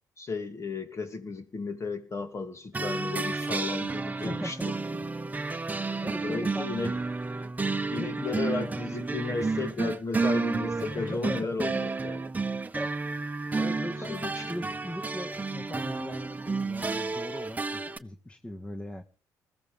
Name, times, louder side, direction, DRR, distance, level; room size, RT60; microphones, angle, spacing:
voice 1, 0.2-4.6 6.2-6.9 7.9-12.2 14.1-14.5, left 4 dB, 40° left, 2.9 m, -34 dB
sound 1, 2.7-18.0, right 3 dB, 20° right, 1.1 m, -31 dB
voice 2, 4.2-5.0 5.9-6.9 7.9-8.6 10.9-11.6 12.7-19.0, left 1 dB, 15° left, 1.7 m, -39 dB
21.0 x 15.0 x 3.6 m
supercardioid pair, 70°, 7 cm